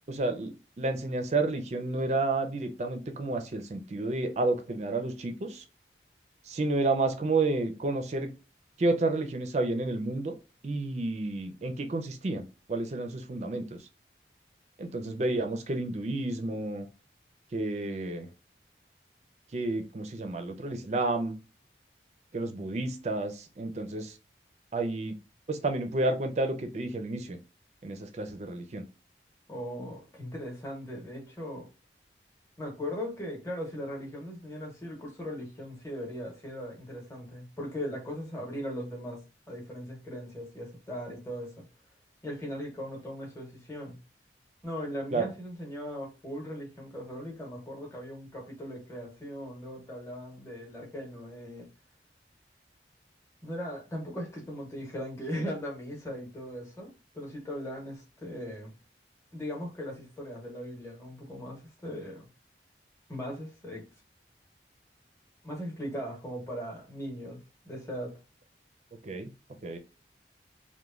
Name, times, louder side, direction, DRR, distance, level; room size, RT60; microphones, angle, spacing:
voice 1, 0.1-5.6 6.5-8.3 8.8-10.3 10.6-13.8 14.8-16.9 17.5-18.3 19.5-21.4 22.3-24.2 24.7-25.2 25.5-27.4 27.8-28.8 45.1-45.3 69.0-69.3 69.6-69.8, right 2 dB, 40° right, 6 dB, 0.4 m, -30 dB
voice 2, 29.5-31.7 32.6-39.2 39.5-41.6 42.2-44.0 44.6-51.7 53.4-58.7 59.3-62.3 63.1-63.8 65.4-68.1, equal, 15° left, -2 dB, 0.8 m, -39 dB
3.0 x 2.1 x 2.3 m, 0.31 s
head